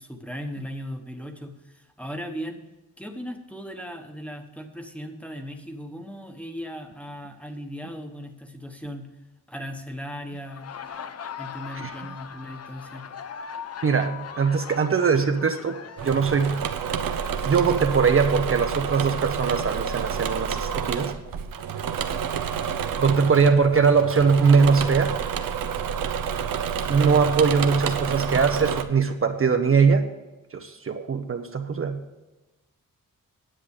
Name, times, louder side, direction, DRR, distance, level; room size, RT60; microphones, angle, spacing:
voice 1, 0.0-2.6 3.0-9.1 9.5-10.7 11.4-13.0 22.6-22.8, equal, 5° left, 5 dB, 1.1 m, -37 dB
Laughter, 10.3-18.0, left 7 dB, 50° left, 0.7 m, -40 dB
voice 2, 13.8-16.7 17.4-21.1 23.0-25.2 26.9-30.1 30.5-32.0, right 5 dB, 40° right, 6 dB, 0.7 m, -21 dB
Engine / Mechanisms, 16.0-28.8, right 7 dB, 90° right, 0.8 m, -29 dB
10.0 x 7.7 x 6.5 m, 1.1 s
wide cardioid pair, 100°, 33 cm